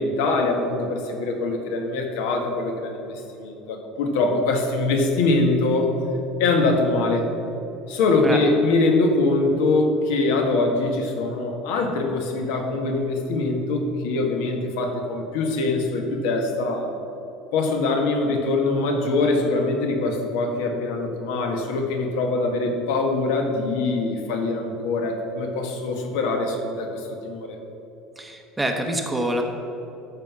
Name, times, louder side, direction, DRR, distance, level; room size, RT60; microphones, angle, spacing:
voice 1, 0.0-5.9 6.4-7.2 7.9-16.9 17.5-27.6, left 3 dB, 80° left, 2 dB, 1.9 m, -23 dB
voice 2, 28.2-29.4, right 1 dB, 5° right, 3 dB, 0.8 m, -26 dB
13.5 x 5.6 x 6.2 m, 3.0 s
cardioid pair, 170°, 0 cm